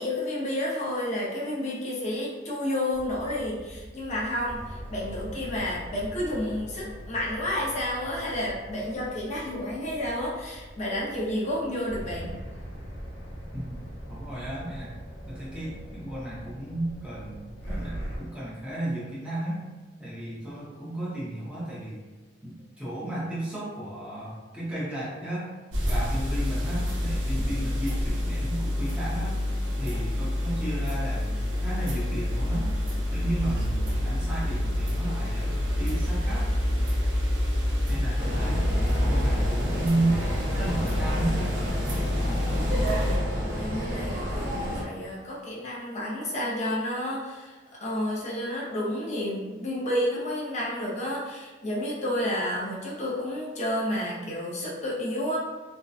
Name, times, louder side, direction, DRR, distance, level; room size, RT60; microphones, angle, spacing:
voice 1, 0.0-12.3 42.5-43.2 43.6-55.4, left 1 dB, 40° left, -5 dB, 0.5 m, -31 dB
sound 1, 2.9-18.2, equal, 85° left, 0.7 m, -41 dB
voice 2, 13.5-15.0 15.3-19.6 20.0-22.0 22.4-25.5 25.9-29.4 29.8-32.7 33.1-36.5 37.9-38.6 39.0-40.3 40.6-41.5, right 1 dB, 5° right, -9 dB, 0.6 m, -33 dB
sound 2, 25.7-43.2, left 1 dB, 90° right, 0.6 m, -27 dB
sound 3, 38.2-44.8, equal, 50° right, 0.7 m, -30 dB
2.6 x 2.1 x 2.3 m, 1.3 s
head